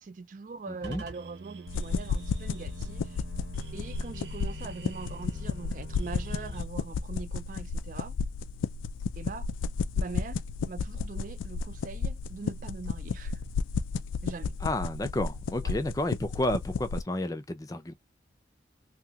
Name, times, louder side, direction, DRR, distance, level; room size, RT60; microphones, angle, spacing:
voice 1, 0.0-3.2 3.7-8.2 9.2-9.5 10.0-13.4 14.2-14.5 15.6-15.8, right 4 dB, 45° right, 0.3 m, -42 dB
voice 2, 0.7-1.0 14.6-17.9, left 1 dB, 20° left, 0.5 m, -31 dB
sound 1, 0.8-6.7, right 2 dB, 65° right, 0.8 m, -44 dB
sound 2, 1.7-17.0, left 5 dB, 85° left, 0.3 m, -33 dB
2.9 x 2.8 x 2.2 m
head